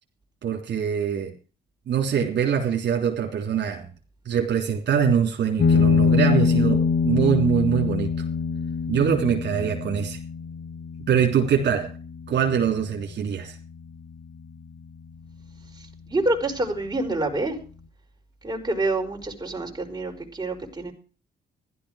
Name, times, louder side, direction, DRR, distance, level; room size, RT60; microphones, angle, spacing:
voice 1, 0.4-1.3 1.9-3.9 4.2-8.1 8.9-10.2 11.1-11.9 12.3-13.5, right 8 dB, 60° right, 0 dB, 3.4 m, -23 dB
sound 1, 5.6-14.6, left 5 dB, 60° left, 1.7 m, -25 dB
voice 2, 16.1-17.6 18.4-20.9, right 2 dB, 20° right, 0 dB, 5.0 m, -27 dB
15.0 x 12.5 x 5.0 m, 0.37 s
cardioid pair, 90°, 20 cm